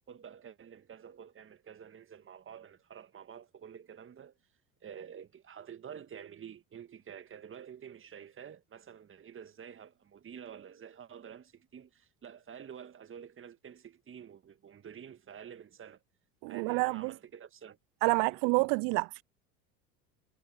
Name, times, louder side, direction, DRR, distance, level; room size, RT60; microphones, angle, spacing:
voice 1, 0.1-4.4 4.8-16.0 16.5-17.8 18.1-18.4, right 8 dB, 30° right, 1.8 m, -49 dB
voice 2, 16.4-17.1 18.0-19.2, right 36 dB, 50° right, 0.5 m, -28 dB
hypercardioid pair, 75°, 43 cm